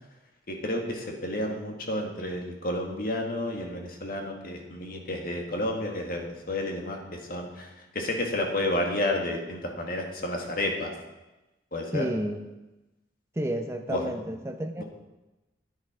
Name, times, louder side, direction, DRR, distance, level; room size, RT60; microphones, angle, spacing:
voice 1, 0.5-10.9 11.7-12.1 13.9-14.1 14.8-14.9, left 1 dB, 50° left, 2 dB, 1.8 m, -31 dB
voice 2, 11.9-12.4 13.4-14.8, right 1 dB, 15° right, 4 dB, 0.6 m, -31 dB
10.0 x 9.7 x 4.9 m, 1.0 s
head